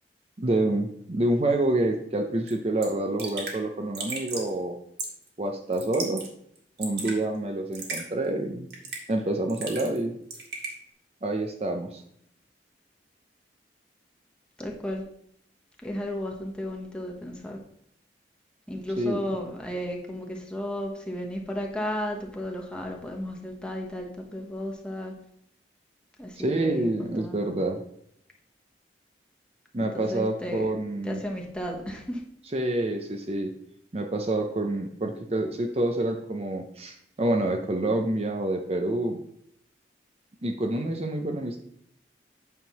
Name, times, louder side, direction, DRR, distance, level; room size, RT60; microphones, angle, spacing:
voice 1, 0.4-4.8 5.4-6.2 6.8-8.7 9.1-10.2 11.2-12.0 19.0-19.2 26.4-27.8 29.7-31.2 32.5-33.5 33.9-39.2 40.4-41.6, right 1 dB, 35° right, 4 dB, 0.7 m, -27 dB
Raindrop / Drip, 2.5-2.6 2.8-2.9 3.2-3.6 3.9-4.5 5.0-5.3 5.7-6.3 6.6-7.2 7.7-8.0 8.7-9.1 9.5-10.0 10.3-10.7, right 4 dB, 65° right, 1.9 m, -35 dB
voice 2, 14.6-15.0 15.8-17.6 18.7-25.1 26.2-27.4 29.9-30.7 31.0-32.2, left 1 dB, 5° left, 0 dB, 1.1 m, -34 dB
8.8 x 3.7 x 5.9 m, 0.71 s
head